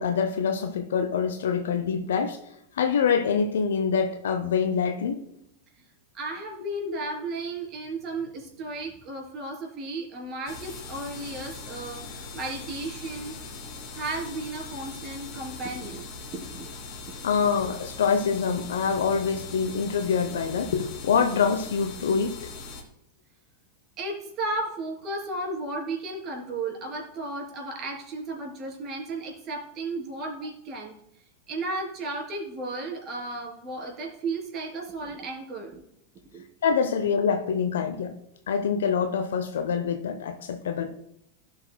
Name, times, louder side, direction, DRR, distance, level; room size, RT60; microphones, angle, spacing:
voice 1, 0.0-2.4 2.7-5.2 17.2-22.4 36.6-38.1 38.5-41.0, left 6 dB, 70° left, 7 dB, 0.7 m, -25 dB
voice 2, 6.1-13.4 13.9-16.1 16.3-16.7 24.0-30.9 31.5-35.8 36.3-36.4, right 2 dB, 40° right, 0 dB, 3.4 m, -34 dB
sound 1, 10.5-22.8, left 4 dB, 45° left, 2.6 m, -41 dB
16.0 x 6.1 x 2.3 m, 0.79 s
figure-of-eight pair, 90°, 0 cm